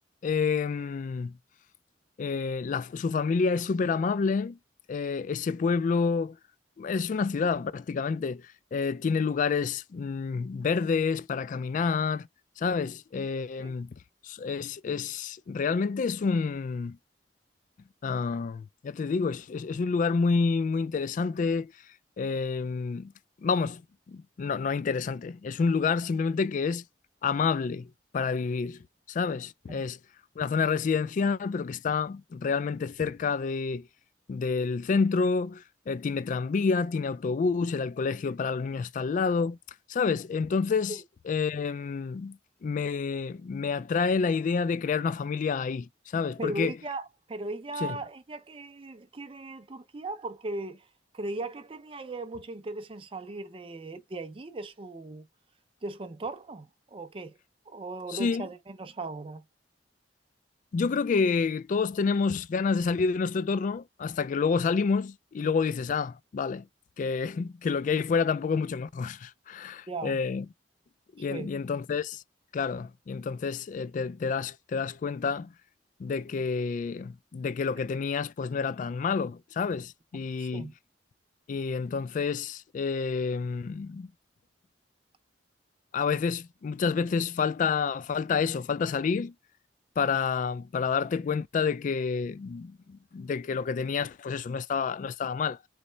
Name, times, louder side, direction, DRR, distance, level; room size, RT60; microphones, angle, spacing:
voice 1, 0.2-1.4 2.2-4.6 4.9-6.4 6.8-8.4 8.7-12.3 12.6-13.9 14.2-17.0 18.0-21.7 22.2-23.1 23.4-23.8 24.1-26.8 27.2-27.9 28.1-28.8 29.1-30.0 30.4-33.9 34.3-39.6 39.9-41.0 41.3-46.7 47.8-48.0 58.1-58.5 60.7-66.6 67.0-70.5 71.2-72.2 72.5-75.5 76.0-80.7 81.5-84.1 85.9-89.3 90.0-95.6, left 5 dB, 45° left, 0.3 m, -28 dB
voice 2, 46.4-50.9 51.1-55.3 55.8-57.4 57.7-59.4 69.9-70.2 71.2-71.5 80.4-80.7, right 2 dB, 30° right, 0.5 m, -38 dB
4.1 x 3.2 x 3.8 m
head